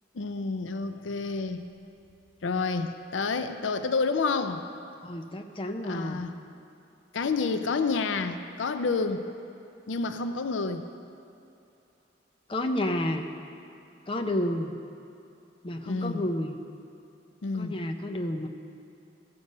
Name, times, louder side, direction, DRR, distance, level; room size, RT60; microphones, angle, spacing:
voice 1, 0.1-1.7 2.4-4.6 5.8-6.3 7.1-9.2 9.9-10.9 15.9-16.2 17.4-17.8, left 4 dB, 75° left, 9 dB, 0.5 m, -29 dB
voice 2, 5.0-6.3 12.5-13.3 14.1-14.8 15.6-16.6 17.5-18.5, left 1 dB, 30° left, 4 dB, 0.6 m, -30 dB
15.5 x 6.8 x 5.3 m, 2.7 s
head